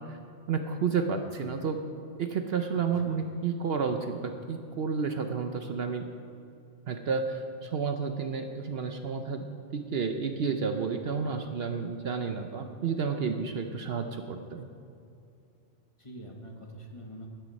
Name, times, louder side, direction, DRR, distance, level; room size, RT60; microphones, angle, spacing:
voice 1, 0.5-1.8 2.2-6.1 6.9-9.5 9.7-14.7, right 5 dB, 60° right, 6 dB, 0.9 m, -31 dB
voice 2, 2.7-3.2 16.0-17.3, right 1 dB, 25° left, 0 dB, 1.3 m, -45 dB
12.0 x 10.0 x 5.3 m, 2.6 s
omnidirectional pair, 1.3 m